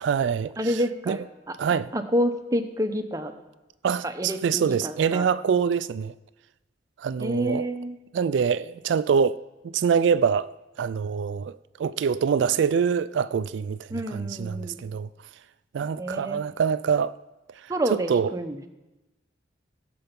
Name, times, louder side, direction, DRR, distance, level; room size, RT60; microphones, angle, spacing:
voice 1, 0.0-0.5 1.1-1.2 1.6-1.9 3.8-6.1 7.0-7.7 8.1-10.5 10.8-15.1 15.7-17.1 17.9-18.3, right 6 dB, 70° right, 0.3 m, -25 dB
voice 2, 0.6-1.6 1.9-3.3 4.0-5.3 7.2-8.0 13.9-14.8 16.0-16.4 17.7-18.6, equal, 20° right, 0.8 m, -28 dB
17.0 x 6.9 x 5.3 m
head